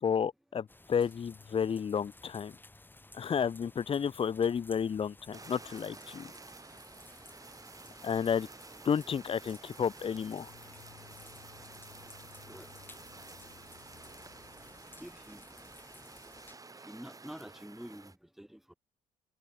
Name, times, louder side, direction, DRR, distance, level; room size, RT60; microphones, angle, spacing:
voice 1, 0.0-2.5 3.1-6.3 8.0-8.5 8.8-10.5, left 7 dB, 40° left, 0.8 m, -31 dB
sound 1, 0.7-16.6, left 2 dB, 15° left, 2.5 m, -56 dB
Fire, 5.3-18.2, right 3 dB, 25° right, 6.5 m, -51 dB
sound 2, 10.0-15.9, left 15 dB, 90° left, 4.3 m, -60 dB
voice 2, 15.0-15.4 16.8-18.1 18.4-18.7, equal, ahead, 1.2 m, -47 dB
cardioid pair, 90°, 15 cm